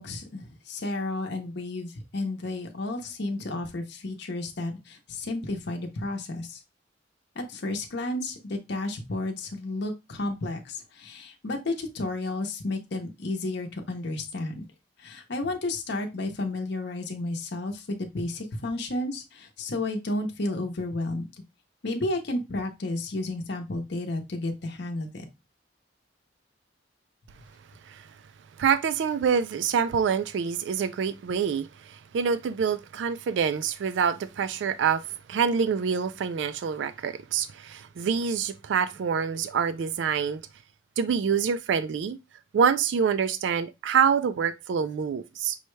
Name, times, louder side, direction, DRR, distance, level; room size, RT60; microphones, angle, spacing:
voice 1, 0.0-6.6 7.4-14.6 15.0-21.3 21.8-25.3, left 2 dB, 65° left, 0.7 m, -32 dB
voice 2, 28.6-40.4 41.0-42.2 42.5-45.6, right 6 dB, 70° right, 0.3 m, -26 dB
5.4 x 2.2 x 3.1 m
head